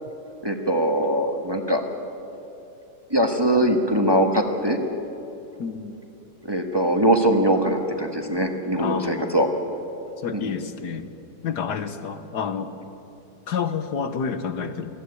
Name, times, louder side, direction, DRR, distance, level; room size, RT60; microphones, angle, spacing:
voice 1, 0.4-1.8 3.1-4.8 6.4-9.5 10.3-10.6, right 1 dB, 15° right, 3 dB, 1.3 m, -22 dB
voice 2, 5.6-6.0 8.8-9.4 10.2-11.1 11.4-12.7 13.5-14.9, left 6 dB, 85° left, 9 dB, 1.7 m, -29 dB
20.0 x 14.5 x 9.8 m, 2.9 s
omnidirectional pair, 1.7 m